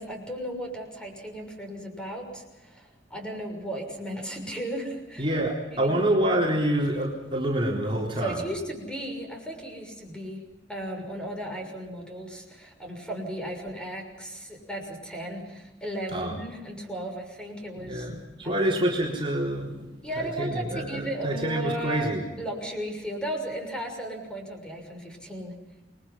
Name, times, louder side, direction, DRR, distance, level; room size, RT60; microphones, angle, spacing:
voice 1, 0.0-5.3 5.7-6.4 8.2-10.4 10.7-18.1 18.4-19.0 20.0-22.1 22.4-25.6, right 1 dB, 5° left, 2 dB, 6.4 m, -35 dB
voice 2, 5.2-8.4 16.1-16.4 17.8-22.2, right 1 dB, 30° right, -2 dB, 3.8 m, -27 dB
29.0 x 22.0 x 5.8 m, 1.1 s
head